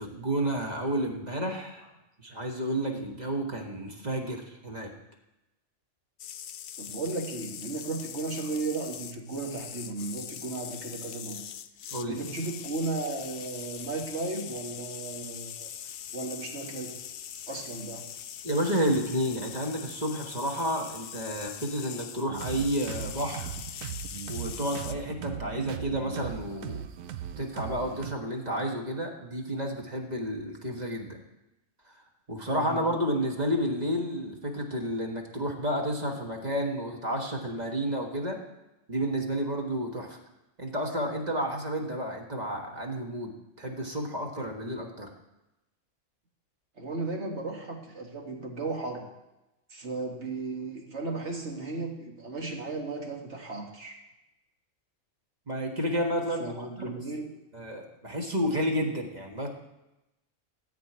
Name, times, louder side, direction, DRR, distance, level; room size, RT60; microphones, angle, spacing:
voice 1, 0.0-1.8 2.2-4.9 11.9-12.2 18.4-23.5 24.3-26.8 27.4-31.2 31.9-32.0 32.3-38.4 38.9-40.2 40.6-45.1 55.5-57.0 57.5-59.5, equal, 35° right, 1 dB, 1.6 m, -31 dB
sound 1, 6.2-24.9, left 9 dB, 60° left, 0.6 m, -42 dB
voice 2, 6.8-11.5 12.1-15.7 16.1-17.0 17.5-18.1 32.5-32.8 46.8-49.1 49.7-54.0 56.4-57.3, right 3 dB, 60° right, 1 dB, 2.1 m, -35 dB
sound 2, 22.3-28.1, right 9 dB, 85° right, 1.1 m, -38 dB
14.0 x 4.7 x 8.7 m, 0.94 s
omnidirectional pair, 1.3 m